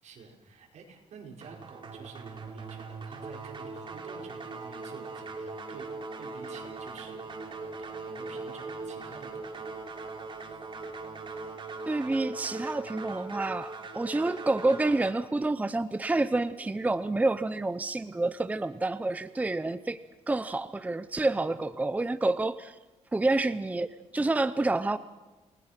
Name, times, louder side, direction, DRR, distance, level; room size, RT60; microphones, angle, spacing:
voice 1, 0.0-5.9 6.2-9.7 21.2-21.5, right 5 dB, 70° right, 1 dB, 5.3 m, -50 dB
sound 1, 1.4-15.1, right 3 dB, 40° right, 3.3 m, -40 dB
sound 2, 6.6-11.6, left 5 dB, 75° left, 3.3 m, -60 dB
voice 2, 11.9-20.0 20.3-22.8 23.1-23.9 24.1-25.0, right 2 dB, 10° right, 13 dB, 0.6 m, -28 dB
30.0 x 19.5 x 6.0 m, 1.1 s
cardioid pair, 125°, 12 cm